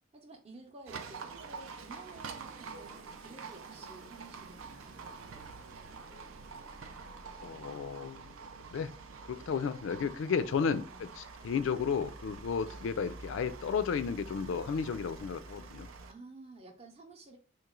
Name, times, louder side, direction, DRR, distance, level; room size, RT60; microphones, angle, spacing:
voice 1, 0.1-5.2 10.7-11.1 12.6-12.8 16.1-17.4, right 2 dB, 30° right, 0.6 m, -52 dB
Livestock farm animals working animals, 0.9-16.1, right 4 dB, 90° right, 0.5 m, -47 dB
sound 1, 1.4-7.7, right 2 dB, 60° right, 0.8 m, -57 dB
voice 2, 7.4-8.4 8.7-8.9 9.3-15.9, left 6 dB, 75° left, 0.3 m, -33 dB
3.1 x 3.0 x 3.6 m
head